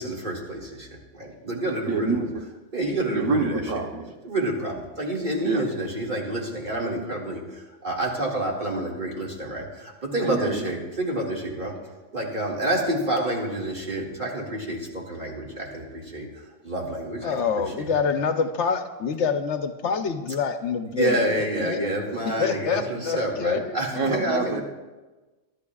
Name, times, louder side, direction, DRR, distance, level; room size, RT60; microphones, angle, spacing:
voice 1, 0.0-2.2 2.7-3.6 4.2-11.8 12.1-17.9 20.8-24.6, right 1 dB, 40° right, -2 dB, 2.3 m, -28 dB
voice 2, 1.9-2.4 3.1-4.1 5.4-5.6 10.2-10.7 23.9-24.6, right 3 dB, 85° right, 3 dB, 1.5 m, -26 dB
voice 3, 17.2-21.9 22.2-23.8, left 5 dB, 70° left, 8 dB, 1.1 m, -26 dB
23.5 x 11.5 x 2.4 m, 1.2 s
omnidirectional pair, 1.3 m